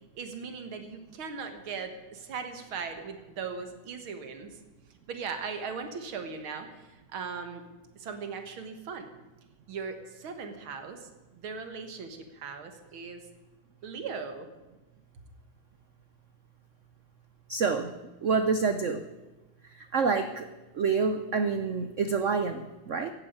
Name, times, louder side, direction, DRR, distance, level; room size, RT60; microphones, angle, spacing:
voice 1, 0.2-4.6 5.1-7.6 8.0-9.1 9.7-11.1 11.4-13.2 13.8-14.5, right 5 dB, 70° right, 7 dB, 2.3 m, -38 dB
voice 2, 17.5-17.9 18.2-19.0 19.7-20.4 20.7-23.1, right 5 dB, 85° right, 8 dB, 0.6 m, -27 dB
15.0 x 9.2 x 8.8 m, 1.1 s
omnidirectional pair, 2.4 m